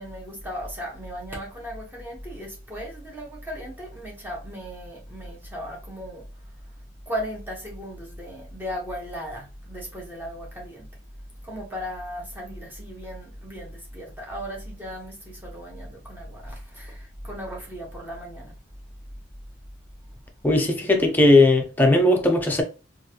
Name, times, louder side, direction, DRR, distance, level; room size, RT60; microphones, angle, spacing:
voice 1, 0.0-6.3 7.1-10.9 11.4-18.5, equal, 10° right, 1.0 m, -36 dB
voice 2, 20.4-22.6, left 2 dB, 10° left, 0.5 m, -18 dB
3.1 x 2.5 x 2.8 m
head